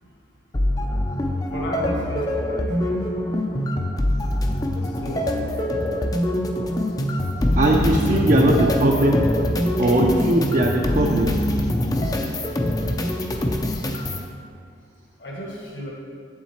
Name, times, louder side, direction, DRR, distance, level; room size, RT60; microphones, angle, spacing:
sound 1, 0.5-14.3, left 1 dB, 20° left, 0.5 m, -23 dB
voice 1, 1.5-3.0 4.7-5.9 15.2-15.9, equal, 65° left, -3 dB, 1.7 m, -34 dB
voice 2, 7.6-9.3 9.8-11.4, right 1 dB, 45° right, -1 dB, 0.6 m, -19 dB
8.2 x 7.2 x 4.4 m, 2.2 s
head